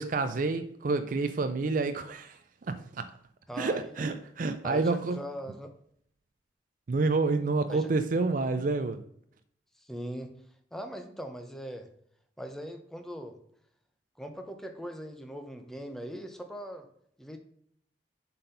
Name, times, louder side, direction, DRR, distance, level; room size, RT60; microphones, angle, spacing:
voice 1, 0.0-3.1 3.6-5.2 6.9-9.0, right 3 dB, 45° right, 0.4 m, -29 dB
voice 2, 3.5-4.1 4.6-5.7 7.7-7.9 9.8-10.3 10.7-11.9 12.4-13.4 14.2-16.9 17.2-17.4, equal, ahead, 0.8 m, -40 dB
7.6 x 4.4 x 5.2 m
head